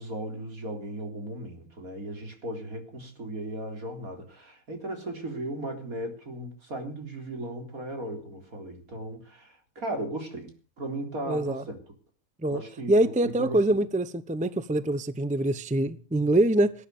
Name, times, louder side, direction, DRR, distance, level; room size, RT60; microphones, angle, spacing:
voice 1, 0.0-11.8 12.5-13.8, right 1 dB, 70° right, 4.2 m, -36 dB
voice 2, 11.3-11.6 12.4-12.6 12.9-16.7, right 1 dB, 5° right, 0.7 m, -24 dB
19.0 x 9.8 x 6.7 m
omnidirectional pair, 1.5 m